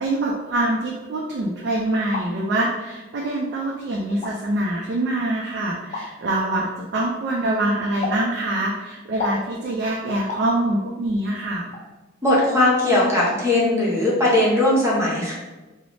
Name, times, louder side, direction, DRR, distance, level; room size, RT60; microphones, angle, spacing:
voice 1, 0.0-11.7, right 1 dB, 55° right, -2 dB, 0.3 m, -24 dB
sound 1, 1.9-2.3 3.2-3.3 4.1-4.3 5.9-6.1 8.0-8.2 9.2-9.4 10.3-10.5 11.7-11.8 12.4-12.6 12.9-13.0, left 3 dB, 35° left, 0.4 m, -29 dB
voice 2, 12.2-15.3, left 1 dB, 15° right, -6 dB, 0.7 m, -19 dB
3.1 x 2.0 x 2.5 m, 1.1 s
head